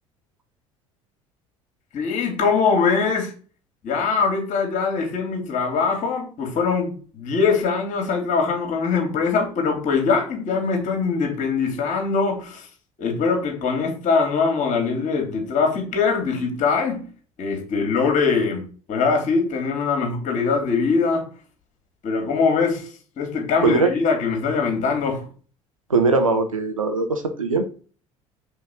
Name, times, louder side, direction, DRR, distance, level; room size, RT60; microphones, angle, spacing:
voice 1, 1.9-3.3 3.8-12.7 13.0-17.1 17.4-21.3 22.0-22.8 23.2-25.3, left 5 dB, 50° left, 2.7 m, -22 dB
voice 2, 25.9-27.7, right 3 dB, 90° right, 0.9 m, -20 dB
5.6 x 4.4 x 6.2 m
figure-of-eight pair, 60°, 17 cm